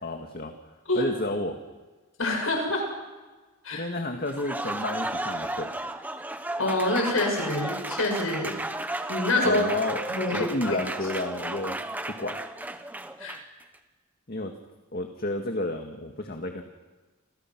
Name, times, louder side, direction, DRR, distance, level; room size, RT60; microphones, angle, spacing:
voice 1, 0.0-0.5 0.9-1.6 3.7-5.7 9.5-10.0 10.3-11.8 12.1-12.4 14.3-14.5 14.9-16.6, left 1 dB, 45° left, 4 dB, 2.0 m, -31 dB
voice 2, 2.2-2.9 3.6-3.8 6.6-8.5 9.1-9.6 10.1-10.8 13.2-13.4, left 2 dB, 80° left, 2 dB, 7.0 m, -26 dB
Applause, 4.2-13.6, right 1 dB, 10° right, 1.2 m, -34 dB
29.0 x 27.5 x 6.2 m, 1.3 s
head